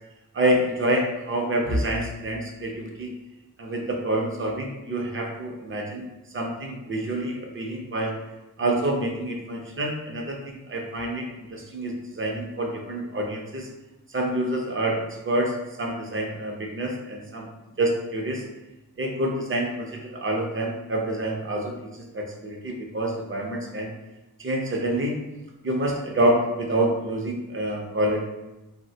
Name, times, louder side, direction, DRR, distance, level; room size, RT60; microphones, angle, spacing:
voice 1, 0.3-3.1 3.6-6.1 6.3-8.1 8.6-13.7 14.1-17.5 17.8-18.4 19.0-23.9 24.4-25.2 25.6-28.2, right 1 dB, 35° right, 1 dB, 0.5 m, -27 dB
3.1 x 2.1 x 2.7 m, 1.0 s
wide cardioid pair, 125°, 35 cm